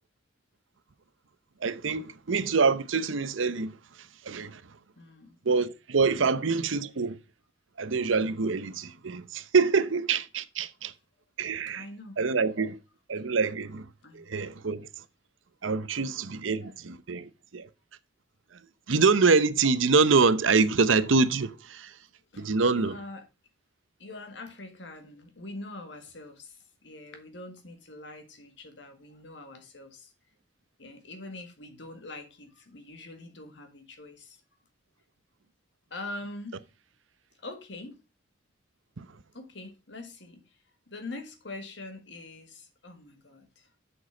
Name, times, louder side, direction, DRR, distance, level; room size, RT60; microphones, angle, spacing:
voice 1, 1.6-3.7 4.3-4.6 5.5-7.2 7.8-10.9 11.4-11.8 12.2-12.8 13.1-13.8 14.1-14.9 15.6-17.7 18.9-21.9 22.4-22.9 39.0-39.1, right 4 dB, 85° right, 0.7 m, -25 dB
voice 2, 5.0-5.4 6.1-6.3 11.7-12.2 14.0-14.3 15.9-16.1 16.6-16.8 22.3-23.3 24.0-30.1 30.8-34.4 35.9-36.6 37.4-38.0 39.3-40.4 40.9-43.7, left 2 dB, 65° left, 1.8 m, -44 dB
7.6 x 6.2 x 4.9 m
head